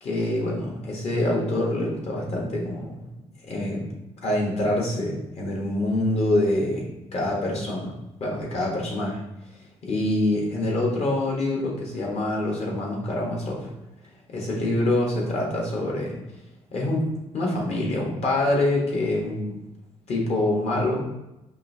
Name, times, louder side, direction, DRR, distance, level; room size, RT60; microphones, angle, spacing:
voice 1, 0.0-2.9 3.5-3.9 4.2-9.2 9.8-13.7 14.3-16.2 16.7-17.1 17.3-19.6 20.1-21.1, left 1 dB, 60° left, -2 dB, 1.4 m, -25 dB
5.4 x 2.7 x 2.8 m, 0.92 s
cardioid pair, 80°, 12 cm